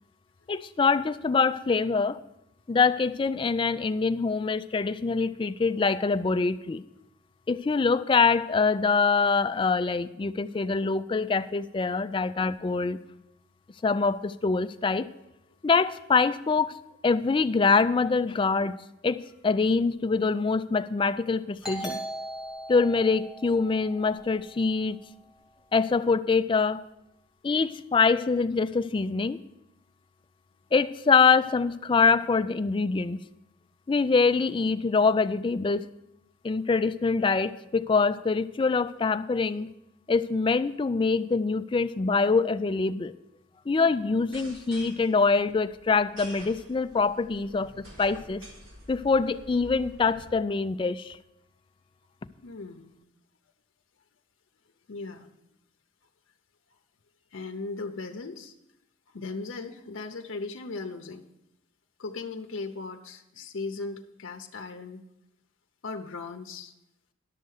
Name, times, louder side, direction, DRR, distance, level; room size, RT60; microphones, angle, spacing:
voice 1, 0.5-2.2 2.7-6.8 7.5-13.0 13.8-15.1 15.6-16.7 17.0-18.8 19.0-22.0 22.7-25.0 25.7-26.8 27.4-29.4 30.7-33.2 33.9-35.9 36.4-39.7 40.1-43.1 43.7-48.4 48.9-51.2, left 4 dB, 25° left, 12 dB, 0.3 m, -24 dB
Doorbell, 21.6-25.0, right 1 dB, 5° right, 2.6 m, -39 dB
sound 1, 44.2-50.3, equal, 80° right, 2.7 m, -48 dB
voice 2, 52.4-53.0 54.9-55.3 57.3-58.5 59.1-61.2 62.0-65.0 65.8-66.7, left 3 dB, 85° left, 4 dB, 0.7 m, -37 dB
11.5 x 6.7 x 6.3 m, 0.86 s
head